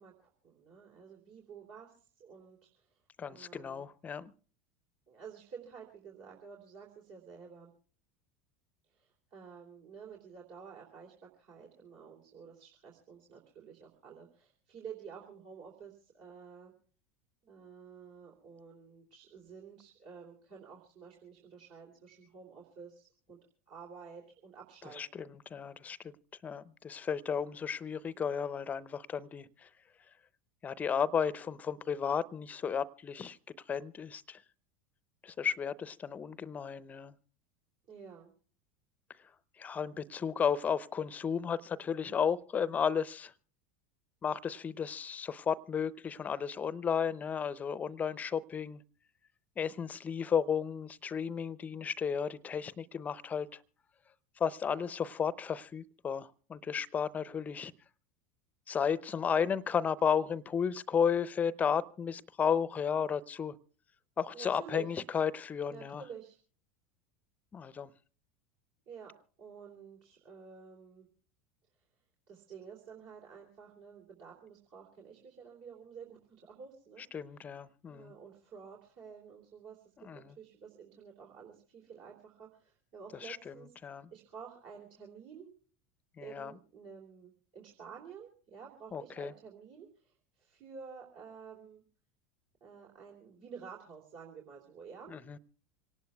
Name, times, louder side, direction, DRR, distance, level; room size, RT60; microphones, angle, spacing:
voice 1, 0.0-3.0 3.3-3.9 5.1-7.7 8.8-16.7 17.4-23.4 23.7-25.0 37.9-38.3 64.3-64.9 65.7-66.4 68.9-71.1 72.3-77.0 77.9-83.7 84.1-85.5 86.2-91.8 92.6-95.1, right 6 dB, 55° right, 3.1 m, -51 dB
voice 2, 3.2-4.3 25.0-26.1 26.4-29.7 30.6-33.4 33.7-34.4 35.2-37.1 39.6-43.3 44.2-48.8 49.6-53.6 54.4-57.7 58.7-63.5 64.2-66.0 67.5-67.9 77.1-78.1 80.0-80.4 83.2-84.1 86.2-86.6 88.9-89.3 95.1-95.4, left 7 dB, 25° left, 0.6 m, -33 dB
26.0 x 18.5 x 2.3 m
figure-of-eight pair, 80°, 6 cm